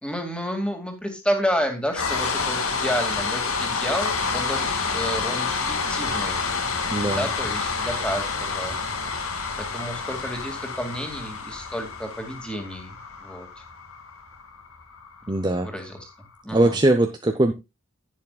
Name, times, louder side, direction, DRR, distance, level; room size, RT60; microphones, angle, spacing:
voice 1, 0.0-8.8 9.6-13.5 15.6-16.0 16.4-16.8, equal, 5° left, 4 dB, 2.3 m, -30 dB
sound 1, 1.9-16.0, left 4 dB, 75° left, 2.1 m, -28 dB
voice 2, 6.9-7.3 15.3-15.7 16.5-17.5, right 1 dB, 20° right, 6 dB, 0.7 m, -21 dB
11.0 x 10.5 x 2.3 m, 0.25 s
head